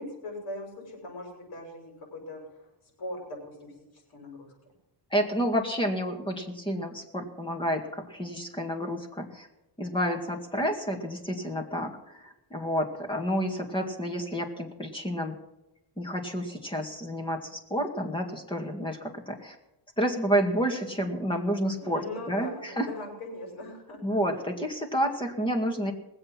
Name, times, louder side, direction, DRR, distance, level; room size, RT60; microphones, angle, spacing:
voice 1, 0.0-2.7 3.0-3.9 4.1-4.5 21.8-24.0, left 1 dB, 60° left, 1 dB, 6.3 m, -40 dB
voice 2, 5.1-9.5 9.8-15.4 16.0-19.6 20.0-22.9 24.0-25.9, equal, 10° left, 3 dB, 2.0 m, -30 dB
20.5 x 8.0 x 5.9 m, 0.93 s
cardioid pair, 125°, 43 cm